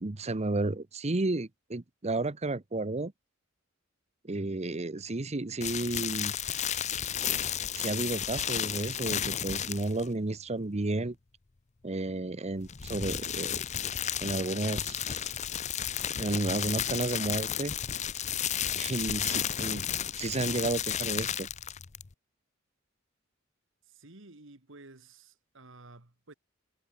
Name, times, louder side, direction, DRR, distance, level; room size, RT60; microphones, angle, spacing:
voice 1, 0.0-3.1 4.2-6.3 7.7-11.1 11.8-13.6 14.2-15.3 16.2-17.7 18.7-19.8 20.2-21.5, right 2 dB, 35° right, 0.9 m, -32 dB
sound 1, 5.6-10.1 12.6-22.1, left 9 dB, 35° left, 0.6 m, -33 dB
voice 2, 23.9-26.3, right 2 dB, 70° right, 2.2 m, -52 dB
head